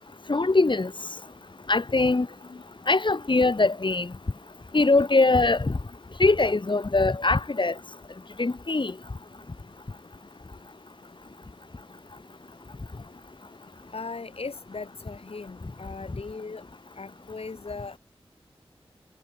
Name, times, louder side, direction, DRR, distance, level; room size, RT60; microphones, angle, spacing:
voice 1, 0.3-0.9 1.7-2.3 2.9-4.1 4.7-5.7 6.2-7.7 8.4-8.9, left 3 dB, 50° left, 7.9 m, -22 dB
voice 2, 13.9-16.6 17.0-18.0, left 4 dB, 75° left, 7.5 m, -38 dB
wide cardioid pair, 50°, 10 cm